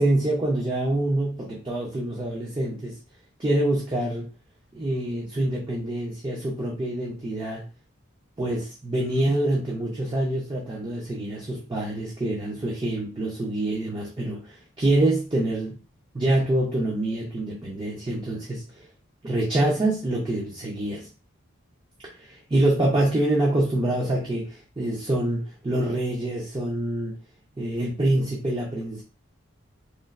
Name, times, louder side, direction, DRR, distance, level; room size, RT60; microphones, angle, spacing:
voice 1, 0.0-3.0 3.4-4.3 4.7-7.6 8.4-15.8 16.1-18.7 19.2-21.1 22.2-27.2 27.6-29.0, right 1 dB, 20° right, -3 dB, 0.5 m, -26 dB
3.2 x 2.3 x 2.3 m, 0.36 s
head